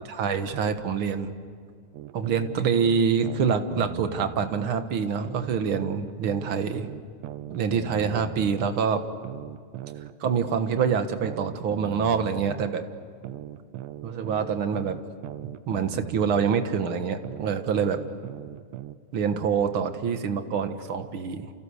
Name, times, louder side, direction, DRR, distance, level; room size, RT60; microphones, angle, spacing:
voice 1, 0.1-1.3 2.1-6.9 7.5-9.0 10.2-12.8 14.0-15.0 15.4-18.0 19.1-21.5, right 6 dB, 50° right, 8 dB, 1.9 m, -26 dB
sound 1, 1.9-4.7 5.2-8.7 9.2-12.7 13.2-16.7 17.2-19.0, right 14 dB, 80° right, 2.3 m, -39 dB
29.5 x 29.5 x 6.6 m, 2.1 s
omnidirectional pair, 3.5 m